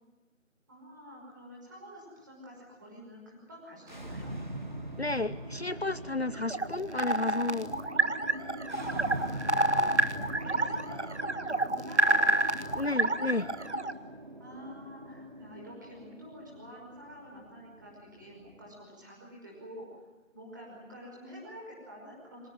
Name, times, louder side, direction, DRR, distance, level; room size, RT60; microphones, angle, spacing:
voice 1, 0.7-4.3 8.7-9.3 9.6-12.9 14.4-20.0 20.3-22.5, equal, 15° right, -3 dB, 5.5 m, -48 dB
sound 1, 3.8-18.8, right 1 dB, 35° right, 1.7 m, -42 dB
voice 2, 5.0-7.7 12.7-13.5, left 3 dB, 50° left, 16 dB, 0.7 m, -32 dB
Insectobot Scanning, 6.3-13.9, right 2 dB, 55° right, 1.6 m, -28 dB
24.5 x 19.5 x 9.2 m, 1.1 s
figure-of-eight pair, 175°, 40 cm